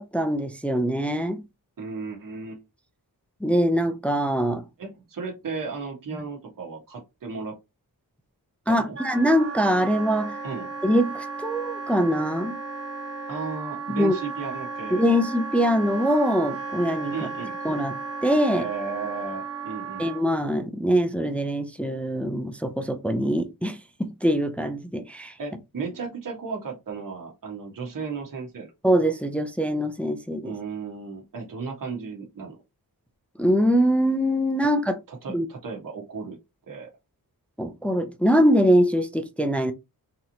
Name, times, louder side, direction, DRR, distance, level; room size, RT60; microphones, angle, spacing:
voice 1, 0.0-1.4 3.4-4.6 8.7-10.4 10.8-12.6 13.9-14.1 14.9-17.1 17.6-17.9 18.2-18.7 20.0-25.3 28.8-30.5 33.4-35.0 35.3-35.5 37.6-39.7, equal, 5° left, 0.4 m, -23 dB
voice 2, 1.8-2.6 4.8-7.6 8.7-9.0 10.4-10.7 13.3-15.2 17.1-17.5 18.5-20.1 25.4-28.7 30.4-32.6 34.6-34.7 35.1-36.4 36.7-36.9, right 5 dB, 60° right, 1.2 m, -35 dB
Wind instrument woodwind instrument, 8.9-20.3, right 4 dB, 40° right, 0.8 m, -35 dB
4.0 x 3.0 x 2.7 m
wide cardioid pair, 120°, 37 cm